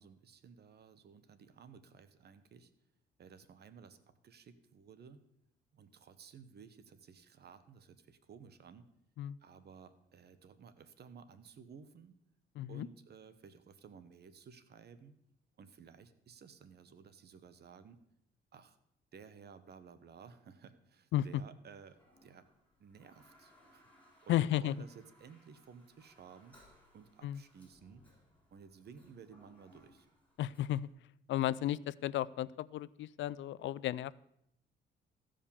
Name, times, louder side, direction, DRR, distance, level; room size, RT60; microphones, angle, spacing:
voice 1, 0.0-2.7 3.2-5.2 5.7-8.9 9.4-12.2 12.7-15.2 15.6-18.0 18.5-18.8 19.1-22.5 22.8-23.9 24.2-26.6 26.9-28.0 28.5-30.1, right 6 dB, 55° right, 12 dB, 1.1 m, -56 dB
voice 2, 12.6-12.9 21.1-21.3 24.3-24.8 27.2-27.4 30.4-30.9 31.3-34.1, left 13 dB, 70° left, 20 dB, 0.4 m, -34 dB
Toilet flush, 21.8-30.9, left 1 dB, 5° left, 4.0 m, -66 dB
15.0 x 5.1 x 7.1 m, 0.77 s
cardioid pair, 90°, 20 cm